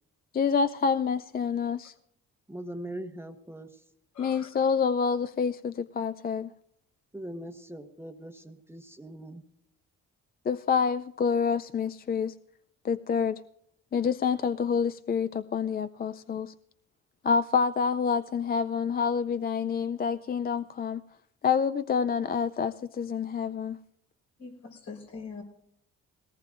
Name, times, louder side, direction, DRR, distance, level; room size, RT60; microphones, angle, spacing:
voice 1, 0.3-1.9 4.2-6.5 10.5-12.3 12.8-13.4 13.9-16.5 17.2-21.0 21.4-23.8, left 6 dB, 30° left, 0.4 m, -27 dB
voice 2, 2.5-3.8 7.1-9.4, right 1 dB, 10° right, 1.0 m, -41 dB
voice 3, 4.1-4.5 24.4-25.4, left 4 dB, 75° left, 4.2 m, -43 dB
20.0 x 18.5 x 2.5 m
cardioid pair, 90°, 30 cm